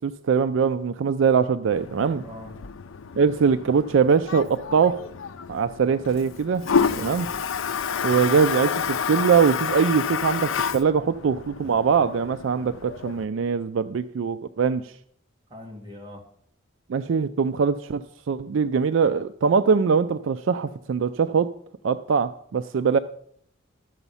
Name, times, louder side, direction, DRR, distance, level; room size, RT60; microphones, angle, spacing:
voice 1, 0.0-2.2 3.2-5.0 5.5-6.6 7.0-7.3 8.0-14.9 16.9-21.5 21.8-23.0, right 6 dB, 70° right, 12 dB, 0.4 m, -22 dB
Toilet flush, 1.7-13.2, left 6 dB, 85° left, 0.5 m, -30 dB
voice 2, 2.1-2.6 6.9-7.2 15.5-16.2, equal, 20° right, 0 dB, 1.6 m, -41 dB
12.0 x 7.0 x 5.5 m, 0.66 s
head